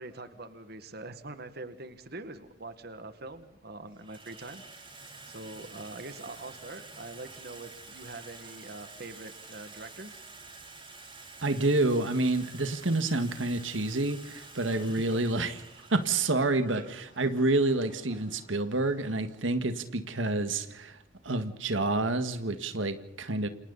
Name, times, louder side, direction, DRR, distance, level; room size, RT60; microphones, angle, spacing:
voice 1, 0.0-4.8 5.3-10.2 14.7-15.3 16.3-16.4 16.8-16.9, right 2 dB, 55° right, 10 dB, 1.9 m, -44 dB
Water tap faucet / Sink (filling or washing), 2.1-2.2 3.1-3.5 3.8-21.4, right 3 dB, 25° right, 7.2 m, -50 dB
voice 2, 11.4-15.5 15.9-16.8 17.2-21.0 21.2-23.5, right 2 dB, 90° right, 9 dB, 1.8 m, -28 dB
28.5 x 28.0 x 4.1 m, 0.81 s
head